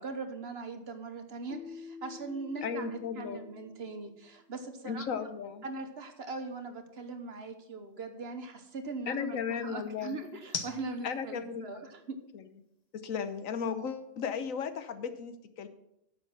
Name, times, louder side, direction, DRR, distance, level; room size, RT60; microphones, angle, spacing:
voice 1, 0.0-5.3 5.6-12.2, right 3 dB, 50° right, 7 dB, 1.2 m, -40 dB
sound 1, 0.7-15.0, left 4 dB, 35° left, 1.0 m, -51 dB
Keyboard (musical), 1.5-4.3, left 5 dB, 55° left, 1.6 m, -49 dB
voice 2, 2.6-3.5 4.8-5.7 9.1-10.2 11.0-11.9 12.3-12.4 12.9-15.7, left 6 dB, 75° left, 11 dB, 1.2 m, -35 dB
10.0 x 7.4 x 5.7 m, 0.81 s
omnidirectional pair, 1.4 m